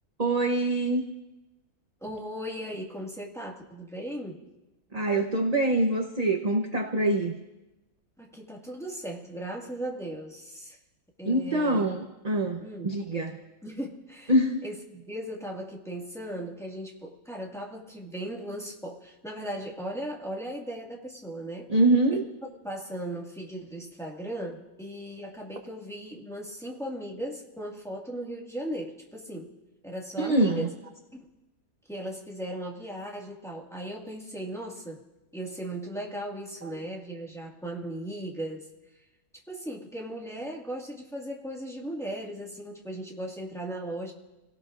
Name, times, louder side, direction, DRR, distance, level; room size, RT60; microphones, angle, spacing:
voice 1, 0.2-1.0 4.9-7.3 11.2-13.4 14.3-14.6 21.7-22.2 30.2-30.7 36.6-36.7, right 1 dB, 30° right, 2 dB, 0.8 m, -25 dB
voice 2, 2.0-4.4 8.2-10.8 11.2-12.0 12.6-13.0 13.6-14.3 14.6-21.7 22.1-22.2 22.6-29.5 29.8-30.7 31.1-31.3 31.9-35.0 35.3-38.7 39.5-44.1, right 1 dB, ahead, -2 dB, 1.8 m, -37 dB
29.5 x 17.5 x 2.6 m, 1.0 s
omnidirectional pair, 1.7 m